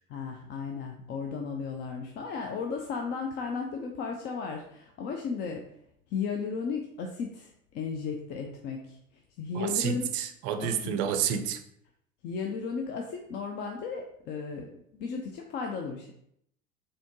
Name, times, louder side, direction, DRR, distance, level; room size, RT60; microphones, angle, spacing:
voice 1, 0.1-5.6 6.1-9.0 9.4-10.1 10.6-10.9 12.2-16.1, left 5 dB, 25° left, 2 dB, 0.4 m, -35 dB
voice 2, 9.5-11.6, right 8 dB, 40° right, 9 dB, 0.5 m, -29 dB
4.1 x 3.7 x 2.9 m, 0.72 s
figure-of-eight pair, 75°, 41 cm